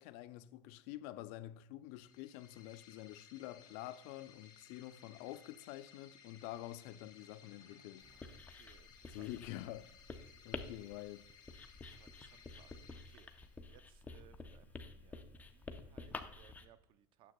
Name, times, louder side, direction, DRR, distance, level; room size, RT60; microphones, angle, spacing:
voice 1, 0.0-8.4 9.1-11.3, left 15 dB, 65° left, 0.4 m, -48 dB
sound 1, 1.9-13.8, left 7 dB, 40° left, 1.9 m, -62 dB
voice 2, 7.2-9.3 11.9-13.3 13.7-17.3, right 11 dB, 50° right, 0.6 m, -66 dB
Writing, 8.0-16.6, left 3 dB, 15° left, 0.6 m, -50 dB
9.2 x 7.3 x 2.2 m
supercardioid pair, 115°, 11 cm